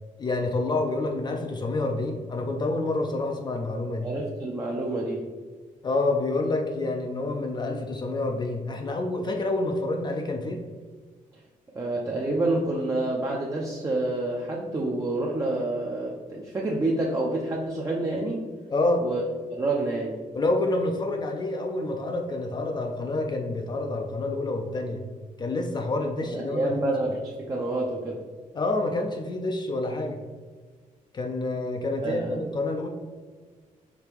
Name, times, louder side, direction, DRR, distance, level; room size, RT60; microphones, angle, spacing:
voice 1, 0.2-4.1 5.8-10.6 18.7-19.0 20.3-25.0 25.4-26.9 28.5-30.2 31.1-32.9, left 2 dB, 30° left, 3 dB, 0.4 m, -28 dB
voice 2, 4.0-5.3 11.7-18.4 19.0-19.2 19.5-20.2 26.3-28.2 32.0-32.4, right 2 dB, 20° right, -3 dB, 0.5 m, -28 dB
4.7 x 3.3 x 3.4 m, 1.5 s
wide cardioid pair, 150°, 14 cm